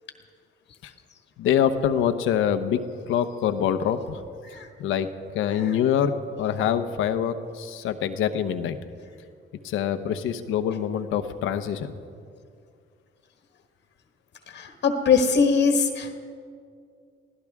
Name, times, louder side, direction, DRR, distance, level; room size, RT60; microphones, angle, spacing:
voice 1, 1.4-2.8 3.1-4.2 4.8-5.1 5.3-8.8 9.6-12.0, left 9 dB, 90° left, 10 dB, 0.9 m, -25 dB
voice 2, 14.5-16.2, left 5 dB, 65° left, 5 dB, 1.3 m, -21 dB
23.5 x 16.0 x 3.6 m, 2.3 s
cardioid pair, 90°, 20 cm